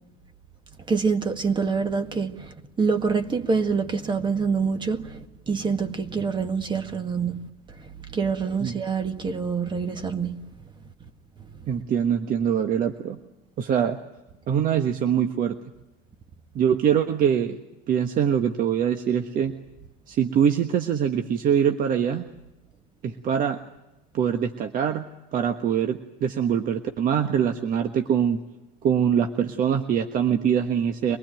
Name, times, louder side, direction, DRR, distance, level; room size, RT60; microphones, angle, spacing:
voice 1, 0.9-7.4 7.8-10.4 11.5-11.6, right 5 dB, 25° right, 1.9 m, -26 dB
voice 2, 11.7-13.2 13.6-14.0 14.5-15.6 16.5-17.6 17.9-19.5 20.1-22.2 23.0-23.6 24.1-25.0 25.3-28.4 28.8-31.2, right 8 dB, 45° right, 1.4 m, -23 dB
24.5 x 19.5 x 9.1 m
hypercardioid pair, 90°, 19 cm